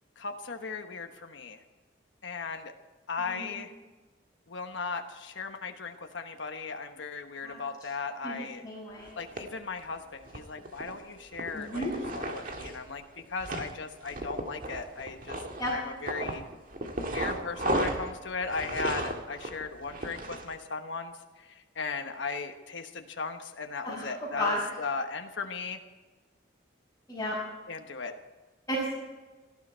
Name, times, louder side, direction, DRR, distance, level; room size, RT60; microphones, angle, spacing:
voice 1, 0.2-1.6 2.2-2.7 3.1-3.7 4.5-8.6 9.2-11.8 12.1-13.0 13.3-15.4 15.7-16.5 17.1-21.1 21.4-25.8 27.7-28.1, left 4 dB, 75° left, 5 dB, 1.2 m, -37 dB
voice 2, 8.6-9.1 11.5-11.9 15.6-15.7 23.8-24.1 24.3-24.6 27.1-27.3 28.7-28.9, equal, 15° left, -10 dB, 6.3 m, -32 dB
sound 1, 9.1-9.4 10.3-11.0 11.3-12.8 13.2-13.7 14.1-15.8 16.1-20.6, right 2 dB, 45° right, 1.9 m, -34 dB
18.5 x 14.0 x 4.5 m, 1.2 s
head